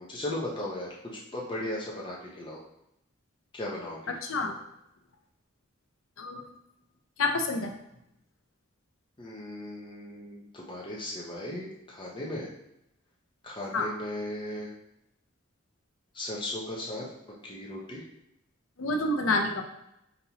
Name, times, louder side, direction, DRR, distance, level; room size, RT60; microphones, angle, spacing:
voice 1, 0.0-2.6 3.5-4.2 9.2-12.5 13.4-14.7 16.1-17.1 17.4-18.0, left 1 dB, 25° left, -4 dB, 0.7 m, -37 dB
voice 2, 6.2-6.5 7.2-7.7 13.7-13.9 18.8-19.6, left 2 dB, 90° left, 4 dB, 0.6 m, -28 dB
5.2 x 2.8 x 2.9 m, 0.82 s
head